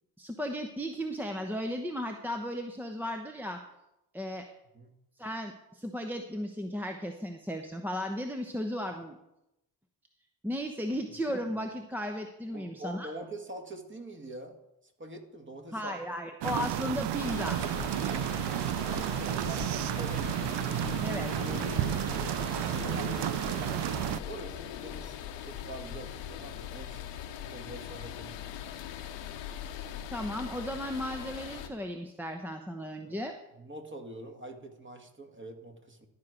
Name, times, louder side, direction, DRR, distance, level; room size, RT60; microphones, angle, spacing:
voice 1, 0.2-3.6 4.1-4.5 5.2-9.2 10.4-13.1 15.7-17.6 21.0-21.3 30.1-33.4, equal, 5° right, 4 dB, 0.9 m, -35 dB
voice 2, 12.5-14.6 14.8-15.9 18.1-18.4 19.0-20.4 22.3-27.1 27.4-28.5 33.0-33.2 33.6-36.1, right 1 dB, 25° right, 5 dB, 1.9 m, -45 dB
sound 1, 16.4-24.2, right 13 dB, 60° right, 0.6 m, -32 dB
sound 2, 17.1-31.7, left 10 dB, 70° left, 1.1 m, -40 dB
11.5 x 4.8 x 6.4 m, 0.89 s
hypercardioid pair, 45°, 46 cm